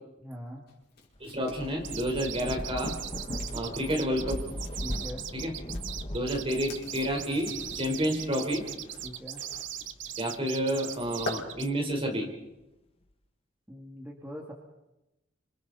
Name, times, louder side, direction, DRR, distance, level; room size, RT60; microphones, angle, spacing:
voice 1, 0.2-0.6 4.8-5.2 9.0-9.4 13.7-14.5, equal, 10° right, -2 dB, 2.6 m, -42 dB
sound 1, 0.7-5.0 5.3-11.4, left 2 dB, 60° left, 5.1 m, -46 dB
Thunder / Rain, 1.2-10.1 10.6-11.9, left 1 dB, 30° left, 1.3 m, -40 dB
voice 2, 1.2-2.9 3.5-4.4 5.3-5.5 6.1-8.6 10.2-12.3, equal, 30° right, 1 dB, 4.7 m, -30 dB
sound 2, 1.8-11.7, right 11 dB, 70° right, 1.1 m, -40 dB
29.0 x 26.5 x 4.3 m, 0.94 s
head